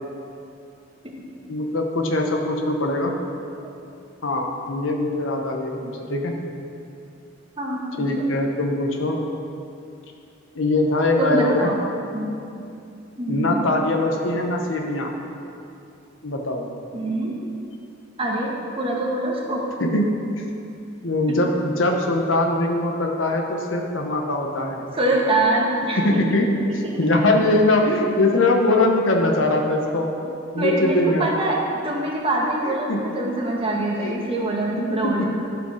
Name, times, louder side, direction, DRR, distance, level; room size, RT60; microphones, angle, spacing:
voice 1, 1.5-3.1 4.2-6.3 8.0-9.2 10.5-11.7 13.3-15.1 16.2-16.7 19.8-20.4 21.0-24.8 26.0-26.5 26.7-31.3 32.7-33.0 34.0-34.1 34.8-35.2, left 2 dB, 70° left, 2 dB, 1.0 m, -22 dB
voice 2, 7.6-8.3 11.2-11.8 12.1-12.4 13.2-13.7 16.9-17.3 18.2-19.7 21.3-21.4 24.9-26.2 26.7-27.4 30.6-35.2, right 1 dB, 30° right, -2 dB, 1.4 m, -25 dB
11.5 x 5.1 x 6.3 m, 2.6 s
head